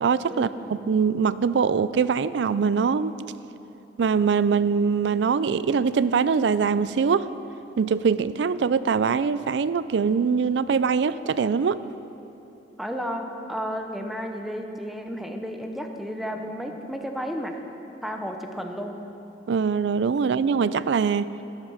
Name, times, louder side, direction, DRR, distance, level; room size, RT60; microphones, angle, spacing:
voice 1, 0.0-0.5 0.9-3.1 4.0-7.3 7.8-11.8 19.5-21.3, right 6 dB, 80° right, 16 dB, 0.4 m, -23 dB
voice 2, 12.8-17.6 18.0-19.0, equal, ahead, 4 dB, 0.8 m, -32 dB
12.0 x 10.5 x 5.5 m, 2.9 s
head